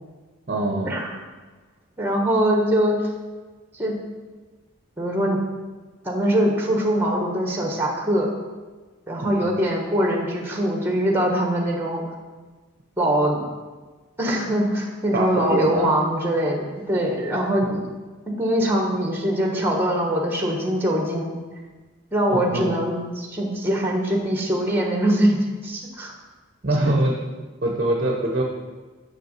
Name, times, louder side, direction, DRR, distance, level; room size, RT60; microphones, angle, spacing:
voice 1, 0.5-0.9 9.2-9.4 15.1-15.9 17.6-17.8 22.3-22.7 26.6-27.1 27.6-28.4, right 1 dB, 40° right, 0 dB, 0.9 m, -23 dB
voice 2, 2.0-2.9 3.7-4.0 5.0-5.4 6.0-8.3 9.1-12.0 13.0-13.4 14.2-17.8 18.4-21.3 22.1-26.1 26.8-26.9, right 1 dB, 10° right, 0 dB, 1.3 m, -22 dB
6.8 x 6.4 x 6.6 m, 1.3 s
head